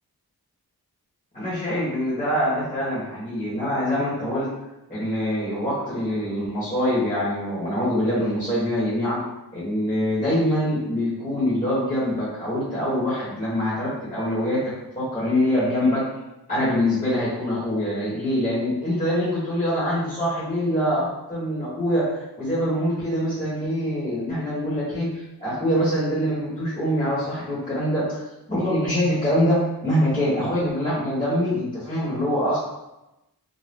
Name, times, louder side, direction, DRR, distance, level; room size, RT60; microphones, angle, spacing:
voice 1, 1.3-4.5 4.9-9.2 9.5-16.0 16.5-28.2 28.5-32.6, equal, 20° left, -10 dB, 1.2 m, -24 dB
2.7 x 2.2 x 3.5 m, 0.95 s
wide cardioid pair, 55°, 40 cm